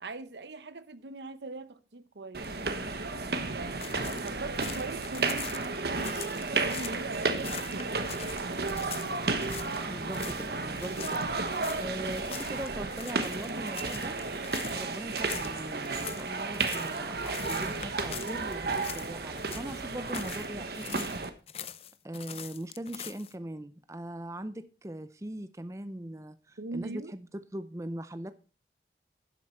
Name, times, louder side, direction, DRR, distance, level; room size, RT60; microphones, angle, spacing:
voice 1, 0.0-2.5 2.8-3.8 4.2-6.2 6.6-8.1 26.6-27.1, right 3 dB, 80° right, 0.9 m, -41 dB
sound 1, 2.3-21.3, right 3 dB, 65° right, 1.2 m, -33 dB
sound 2, 3.8-7.0 7.4-9.8 10.1-10.5 10.8-19.1 19.4-20.5 20.7-23.3, left 9 dB, 35° left, 0.5 m, -43 dB
voice 2, 9.9-11.2 11.8-14.2 14.7-21.1 22.0-28.3, right 1 dB, 15° right, 0.5 m, -40 dB
11.0 x 7.8 x 4.3 m
head